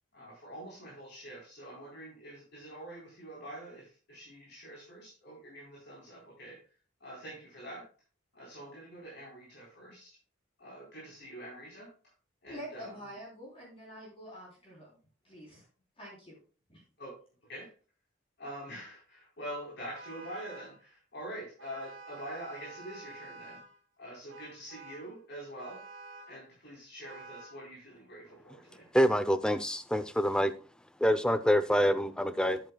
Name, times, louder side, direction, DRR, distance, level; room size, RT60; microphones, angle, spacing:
voice 1, 0.1-6.7 7.0-7.9 8.3-10.2 10.6-12.1 12.4-13.1 17.0-17.1 17.5-17.7 18.4-23.6 24.0-25.8 26.3-28.9, right 1 dB, 60° left, 4.1 m, -45 dB
voice 2, 12.5-14.9 15.2-15.6 16.0-16.4 16.7-16.8, equal, 30° left, 3.7 m, -46 dB
Vehicle horn car horn honking, 19.9-20.8 21.6-23.8 24.3-25.1 25.6-26.4 27.0-27.6, right 3 dB, 70° right, 1.9 m, -49 dB
voice 3, 28.9-30.5 31.0-32.6, equal, 5° left, 0.6 m, -26 dB
10.0 x 9.2 x 2.3 m
head